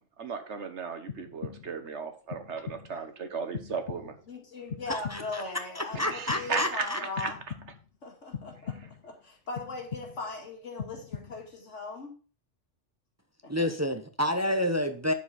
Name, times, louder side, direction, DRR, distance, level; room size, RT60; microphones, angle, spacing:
voice 1, 0.2-4.2 5.9-7.3, right 5 dB, 70° right, 8 dB, 1.5 m, -35 dB
sound 1, 1.1-1.9 2.3-3.0 3.5-4.3 4.7-5.5 5.9-6.7 7.2-8.0 8.3-9.1 9.6-10.4 10.8-11.6, left 7 dB, 55° left, 0.9 m, -41 dB
voice 2, 4.3-7.4 8.0-8.7 9.0-12.1 13.4-13.7, left 3 dB, 85° left, 1 dB, 2.7 m, -39 dB
voice 3, 4.9-5.4 5.7-7.0 13.5-15.1, left 1 dB, 15° right, 7 dB, 0.7 m, -29 dB
9.6 x 7.0 x 4.2 m, 0.37 s
omnidirectional pair, 1.2 m